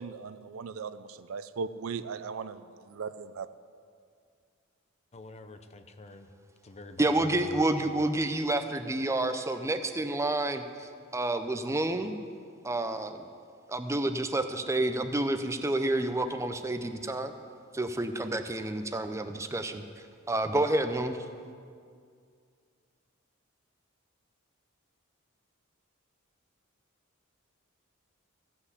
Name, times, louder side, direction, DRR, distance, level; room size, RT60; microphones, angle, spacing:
voice 1, 0.0-2.6 2.9-3.5, right 5 dB, 75° right, 13 dB, 0.5 m, -38 dB
voice 2, 5.1-6.3 6.6-8.0, left 2 dB, 30° left, 8 dB, 0.7 m, -47 dB
voice 3, 7.0-12.1 12.6-13.3 13.7-17.3 17.7-19.8 20.3-21.2, right 2 dB, 15° right, 8 dB, 0.6 m, -29 dB
15.0 x 5.7 x 8.1 m, 2.2 s
head